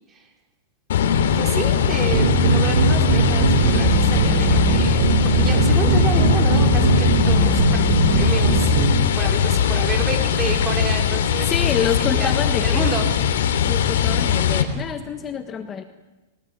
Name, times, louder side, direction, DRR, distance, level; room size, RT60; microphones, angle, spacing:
sound 1, 0.9-14.6, left 8 dB, 75° left, 3.0 m, -20 dB
voice 1, 1.4-7.8 8.1-11.5 12.0-12.3 12.6-13.1, right 5 dB, 20° right, 3 dB, 5.3 m, -30 dB
sound 2, 2.1-9.0, right 6 dB, 55° right, 3.9 m, -20 dB
voice 2, 11.4-13.0 13.7-15.8, left 8 dB, 20° left, 8 dB, 1.5 m, -27 dB
28.5 x 18.5 x 9.4 m, 1.2 s
supercardioid pair, 145°, 0 cm